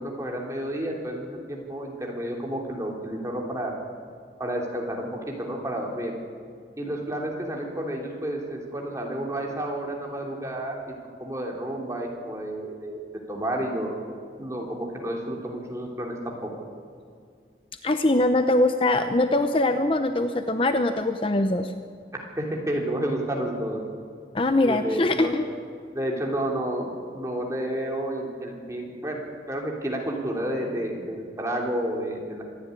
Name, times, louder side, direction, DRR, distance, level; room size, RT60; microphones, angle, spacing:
voice 1, 0.0-3.7 4.4-6.1 6.8-10.8 11.2-13.0 13.3-13.9 14.4-16.5 22.1-23.8 24.7-25.3 25.9-29.2 29.5-32.4, right 1 dB, 20° right, -1 dB, 3.2 m, -30 dB
voice 2, 17.8-21.7 24.3-25.4, left 2 dB, 30° left, 8 dB, 0.7 m, -22 dB
25.0 x 10.5 x 9.8 m, 2.2 s
head